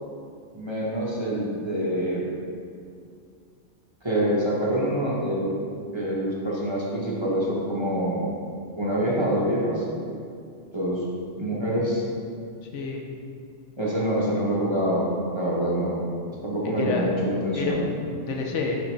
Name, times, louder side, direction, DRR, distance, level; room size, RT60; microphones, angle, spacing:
voice 1, 0.5-2.3 4.0-5.6 5.9-8.3 8.8-9.8 10.7-11.0 11.4-12.0 13.8-15.1 15.3-16.0 16.4-17.8, equal, 25° right, -7 dB, 0.9 m, -25 dB
voice 2, 16.6-17.1 17.5-18.8, left 4 dB, 70° left, 1 dB, 1.0 m, -29 dB
6.2 x 5.3 x 3.2 m, 2.3 s
omnidirectional pair, 1.3 m